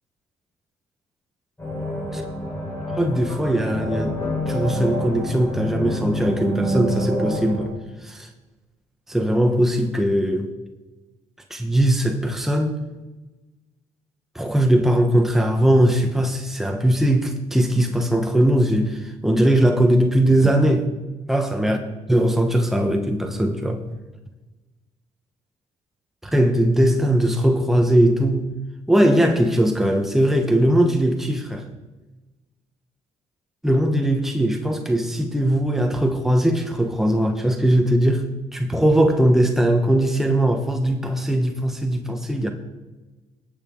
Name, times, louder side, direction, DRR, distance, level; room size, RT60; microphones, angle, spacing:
sound 1, 1.6-7.7, equal, 15° left, 4.3 m, -27 dB
voice 1, 2.9-4.2 4.5-7.7 8.0-8.3 9.1-10.5 11.5-12.7 14.3-20.9 21.3-21.8 22.1-23.8 26.2-28.5 28.9-31.6 33.6-38.2 38.5-42.5, right 1 dB, ahead, 4 dB, 1.3 m, -20 dB
18.5 x 8.4 x 3.9 m, 1.2 s
cardioid pair, 90°, 15 cm